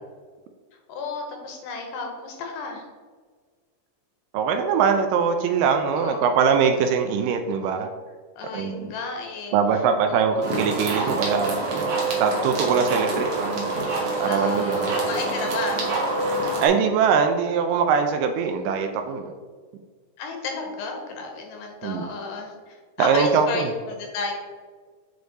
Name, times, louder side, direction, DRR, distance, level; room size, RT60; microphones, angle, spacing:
voice 1, 0.9-2.9 5.9-6.3 8.4-9.6 10.1-10.2 14.2-15.9 20.2-24.3, left 4 dB, 75° left, 2 dB, 2.3 m, -33 dB
voice 2, 4.3-7.9 8.5-8.9 9.5-13.7 14.2-14.9 16.6-19.3 21.8-22.1 23.0-23.7, right 6 dB, 80° right, 6 dB, 2.1 m, -22 dB
sound 1, 10.4-16.7, right 2 dB, 60° right, 2.1 m, -26 dB
7.9 x 3.3 x 4.0 m, 1.5 s
omnidirectional pair, 4.0 m